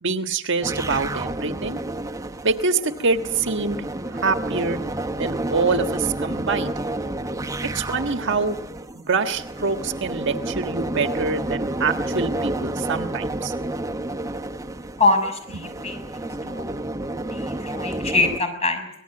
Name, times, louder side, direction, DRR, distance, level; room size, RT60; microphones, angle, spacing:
voice 1, 0.0-1.8 2.4-3.8 4.1-4.8 5.2-6.7 7.7-8.6 8.9-13.5 15.5-15.6, right 4 dB, 65° right, 6 dB, 1.6 m, -25 dB
sound 1, 0.6-18.4, right 1 dB, 15° right, 1.2 m, -30 dB
voice 2, 15.0-16.0 16.4-16.7 17.3-18.9, left 3 dB, 35° left, 6 dB, 6.4 m, -23 dB
25.0 x 19.0 x 7.8 m, 0.78 s
head